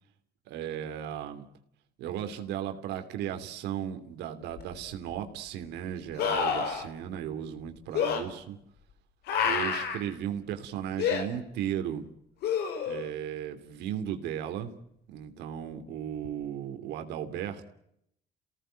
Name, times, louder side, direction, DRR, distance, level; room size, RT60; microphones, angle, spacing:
voice 1, 0.5-1.4 2.0-8.6 9.4-12.1 12.9-14.7 15.1-17.6, right 10 dB, 85° right, 7 dB, 3.0 m, -35 dB
sound 1, 4.6-4.7 6.2-6.8 7.9-8.2 9.3-10.0 11.0-11.2 12.4-13.1 16.2-16.3, left 7 dB, 75° left, 4.7 m, -28 dB
28.5 x 18.0 x 9.0 m, 0.77 s
cardioid pair, 110°, 17 cm